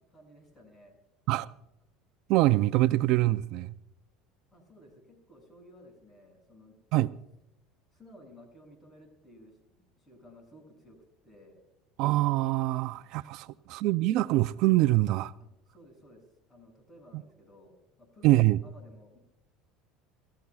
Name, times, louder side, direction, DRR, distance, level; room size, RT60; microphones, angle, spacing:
voice 1, 0.1-1.0 4.5-6.8 7.9-11.0 11.2-11.6 15.7-17.7 18.0-19.2, left 1 dB, 20° left, 6.6 m, -55 dB
voice 2, 2.3-3.7 6.9-7.1 12.0-15.3 18.2-18.6, right 17 dB, 65° right, 0.4 m, -24 dB
27.0 x 15.0 x 2.4 m
supercardioid pair, 110°, 0 cm